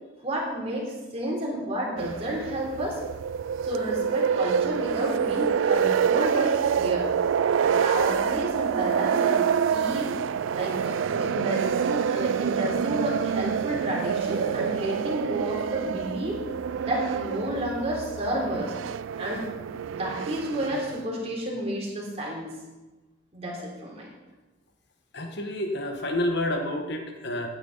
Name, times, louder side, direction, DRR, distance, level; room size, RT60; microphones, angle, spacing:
voice 1, 0.2-3.0 3.6-7.1 7.6-10.1 10.5-16.4 16.8-18.7 19.2-19.4 19.9-22.5 23.3-24.1, right 1 dB, 30° right, -3 dB, 3.4 m, -31 dB
sound 1, 2.0-21.0, right 7 dB, 75° right, 0.3 m, -27 dB
voice 2, 25.1-27.5, left 1 dB, 60° left, 4 dB, 1.5 m, -29 dB
15.5 x 9.6 x 4.1 m, 1.2 s
head